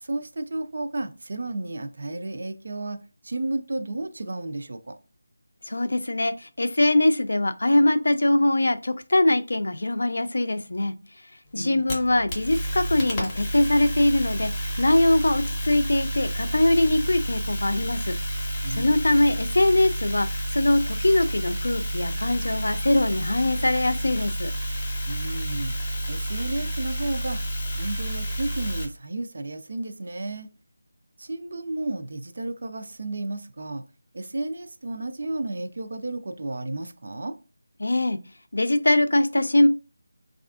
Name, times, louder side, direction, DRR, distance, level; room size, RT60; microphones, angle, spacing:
voice 1, 0.0-3.0 3.2-4.9 11.5-11.8 18.6-18.9 25.1-25.8 26.1-27.4 27.7-30.5 31.2-33.8 34.1-37.4, right 2 dB, 45° right, 0.3 m, -32 dB
voice 2, 5.7-10.9 11.5-18.2 18.7-24.5 37.8-38.2 38.5-39.7, left 1 dB, 80° left, 0.4 m, -22 dB
sound 1, 11.6-28.9, right 1 dB, 15° left, 0.6 m, -30 dB
3.4 x 2.4 x 2.3 m
figure-of-eight pair, 175°, 0 cm